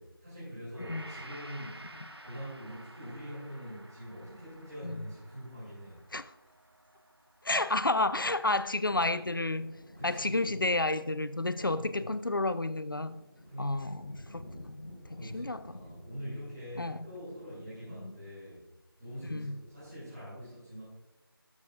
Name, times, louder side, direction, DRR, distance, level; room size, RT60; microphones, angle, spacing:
voice 1, 0.0-1.9 2.2-6.0 9.9-10.5 11.6-12.1 13.4-14.0 15.0-18.6 19.0-20.8, equal, 10° right, 2.7 m, -44 dB
Gong, 0.7-9.1 9.5-9.7, right 1 dB, 90° right, 0.9 m, -52 dB
voice 2, 7.4-9.8 10.0-13.2 13.6-15.8 16.8-17.0 18.0-18.1 19.3-19.6, left 2 dB, 60° left, 0.4 m, -31 dB
sound 1, 8.0-18.2, equal, 20° left, 2.1 m, -53 dB
13.0 x 6.3 x 2.5 m
figure-of-eight pair, 170°, 13 cm